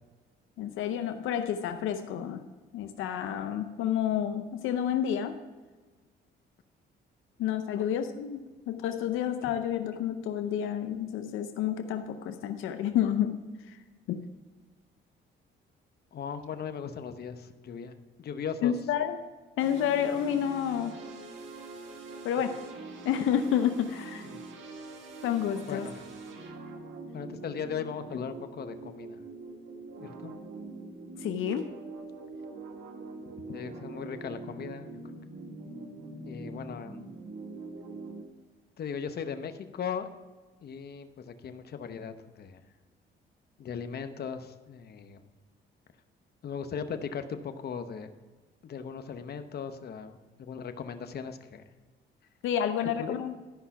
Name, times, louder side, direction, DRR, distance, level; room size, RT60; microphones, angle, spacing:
voice 1, 0.6-2.4 2.7-5.4 7.4-13.8 14.1-14.2 18.6-19.2 19.6-21.0 22.2-22.6 23.0-24.3 25.2-25.9 31.2-31.7 52.4-53.4, left 9 dB, 85° left, 8 dB, 0.7 m, -30 dB
voice 2, 16.1-18.7 24.2-24.4 25.6-26.1 27.1-29.2 30.0-30.3 33.5-34.9 36.2-37.0 38.8-40.1 40.6-42.6 43.6-45.2 46.4-48.1 48.6-51.6 52.8-53.2, left 7 dB, 55° left, 9 dB, 0.9 m, -38 dB
sound 1, 19.6-38.2, right 3 dB, 75° right, 1.7 m, -43 dB
12.5 x 5.6 x 5.8 m, 1.3 s
cardioid pair, 90°, 20 cm